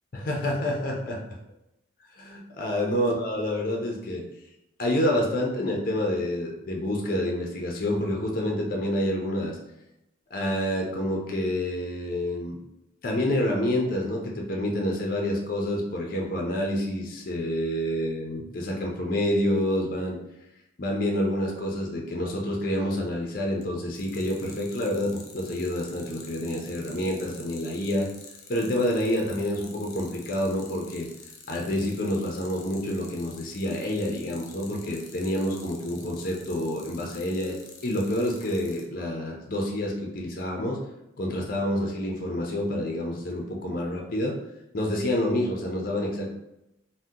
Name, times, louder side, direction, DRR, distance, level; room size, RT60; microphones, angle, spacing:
voice 1, 0.1-1.2 2.1-4.2 4.8-9.6 10.3-12.6 13.0-20.2 20.8-28.1 28.5-31.1 31.5-37.6 37.8-40.8 41.2-44.4 44.7-46.3, left 1 dB, 45° left, 0 dB, 0.5 m, -28 dB
sound 1, 23.2-23.6 24.0-38.8, left 6 dB, 90° left, 0.6 m, -47 dB
2.7 x 2.1 x 3.6 m, 0.88 s
head